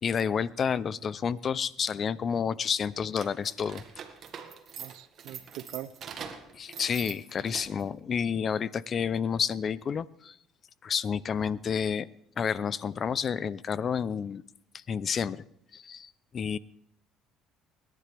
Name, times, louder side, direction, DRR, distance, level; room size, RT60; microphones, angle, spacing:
voice 1, 0.0-3.8 6.5-10.4 10.8-12.1 12.4-14.4 14.9-15.4 15.7-16.6, left 7 dB, 40° left, 19 dB, 0.5 m, -30 dB
sound 1, 3.1-8.0, right 7 dB, 50° right, 1.8 m, -44 dB
voice 2, 4.8-5.9, right 14 dB, 75° right, 15 dB, 0.7 m, -42 dB
28.0 x 11.0 x 3.4 m, 0.75 s
cardioid pair, 100°, 0 cm